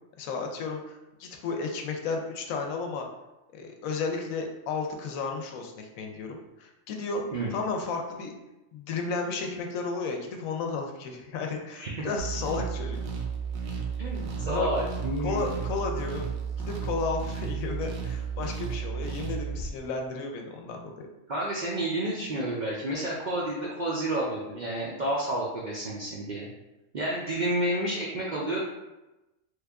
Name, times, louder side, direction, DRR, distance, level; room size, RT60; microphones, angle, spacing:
voice 1, 0.2-3.1 3.5-7.2 7.5-8.3 8.7-13.0 14.4-14.7 15.2-16.3 16.6-21.1, left 4 dB, 90° left, 3 dB, 1.0 m, -33 dB
sound 1, 12.2-19.7, right 6 dB, 85° right, 1.0 m, -33 dB
voice 2, 14.0-15.5 21.3-26.5 26.9-28.6, right 1 dB, 65° right, -5 dB, 0.4 m, -30 dB
3.1 x 2.3 x 3.4 m, 1.0 s
omnidirectional pair, 1.4 m